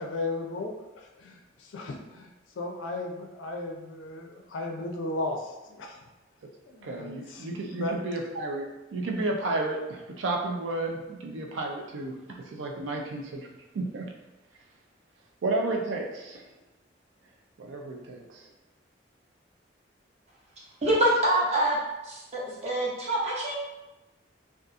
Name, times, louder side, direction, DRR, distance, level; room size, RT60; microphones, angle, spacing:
voice 1, 0.0-2.3 2.6-6.0 6.7-8.0, left 2 dB, 90° left, 2 dB, 0.4 m, -35 dB
voice 2, 6.8-13.5 13.7-14.1 15.4-16.4 17.6-18.5, right 2 dB, 85° right, 1 dB, 0.4 m, -32 dB
voice 3, 20.8-21.8 22.0-23.5, right 1 dB, 35° right, -5 dB, 0.7 m, -25 dB
2.6 x 2.4 x 2.3 m, 1.0 s
head